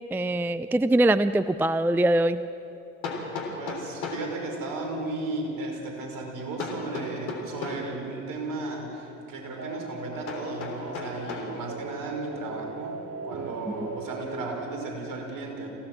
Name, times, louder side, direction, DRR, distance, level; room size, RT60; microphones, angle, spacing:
voice 1, 0.1-2.4, right 1 dB, 5° right, 14 dB, 0.5 m, -22 dB
Hammer, 3.0-4.3 6.6-7.9 10.3-11.5, left 4 dB, 75° left, 3.6 m, -35 dB
voice 2, 3.5-15.7, right 2 dB, 55° right, 1 dB, 5.5 m, -35 dB
sound 1, 9.6-14.8, right 3 dB, 35° right, 2.1 m, -39 dB
25.5 x 16.5 x 7.5 m, 2.8 s
hypercardioid pair, 55°, 39 cm